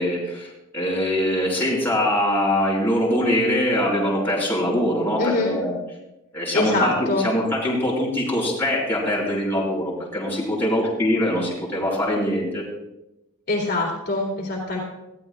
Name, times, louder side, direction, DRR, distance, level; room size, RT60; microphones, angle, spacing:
voice 1, 0.0-5.7 6.3-12.6, left 1 dB, 10° left, -7 dB, 4.7 m, -23 dB
voice 2, 5.2-5.6 6.5-7.2 13.5-14.8, left 2 dB, 50° left, -3 dB, 2.7 m, -23 dB
20.0 x 14.0 x 2.3 m, 0.93 s
head